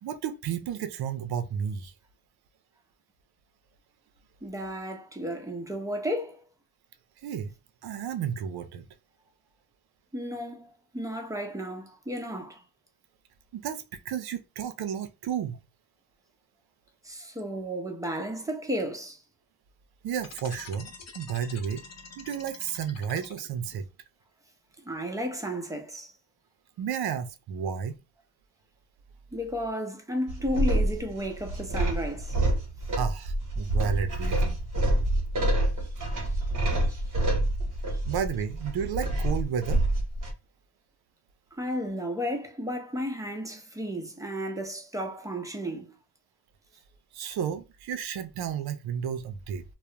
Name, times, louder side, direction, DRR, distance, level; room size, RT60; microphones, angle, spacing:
voice 1, 0.0-1.9 7.2-7.5 7.8-8.9 13.5-15.6 20.0-21.8 22.2-23.9 26.8-28.0 33.0-34.6 38.1-39.8 47.1-49.6, right 8 dB, 70° right, 0.5 m, -32 dB
voice 2, 4.4-6.4 10.1-12.6 17.0-19.2 24.8-26.1 29.3-32.4 36.9-37.3 37.9-38.0 41.5-45.9, equal, 10° right, 0.6 m, -33 dB
sound 1, 20.2-23.7, left 5 dB, 40° left, 0.6 m, -47 dB
sound 2, 30.3-40.3, right 1 dB, 50° right, 0.9 m, -27 dB
2.3 x 2.0 x 2.8 m
cardioid pair, 75°, 40 cm